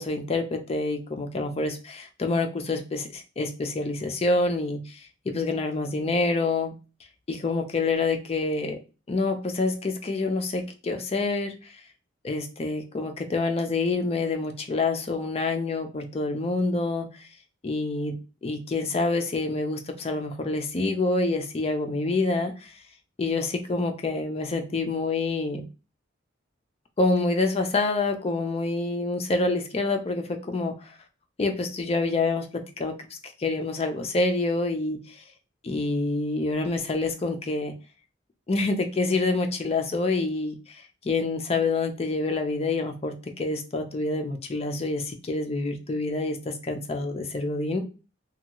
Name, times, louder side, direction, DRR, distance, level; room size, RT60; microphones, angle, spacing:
voice 1, 0.0-5.0 5.3-6.7 7.3-8.8 9.1-11.8 12.2-17.3 17.6-18.2 18.4-22.7 23.2-25.6 27.0-30.9 31.4-32.9 33.4-35.2 35.6-37.7 38.5-47.8, left 3 dB, 30° left, 5 dB, 0.4 m, -27 dB
2.7 x 2.3 x 2.8 m, 0.32 s
head